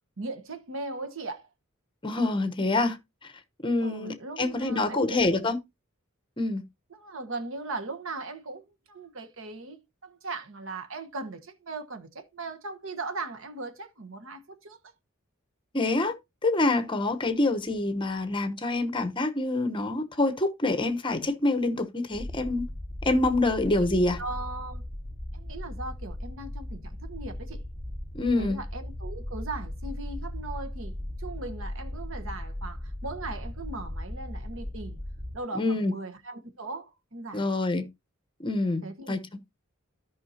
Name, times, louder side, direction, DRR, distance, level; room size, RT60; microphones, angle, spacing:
voice 1, 0.2-1.5 3.8-5.5 6.9-14.9 24.2-24.8 25.3-27.6 28.3-30.9 31.2-35.0 35.3-37.5 38.8-39.2, right 3 dB, 70° right, 1.2 m, -38 dB
voice 2, 2.0-3.0 3.6-5.6 6.4-6.6 15.7-16.1 16.4-22.7 23.0-24.2 28.1-28.6 35.5-35.9 37.3-37.9 38.4-39.2, left 2 dB, 25° left, 1.0 m, -26 dB
sound 1, 22.1-35.4, left 1 dB, 15° right, 2.4 m, -37 dB
13.0 x 5.6 x 2.8 m
head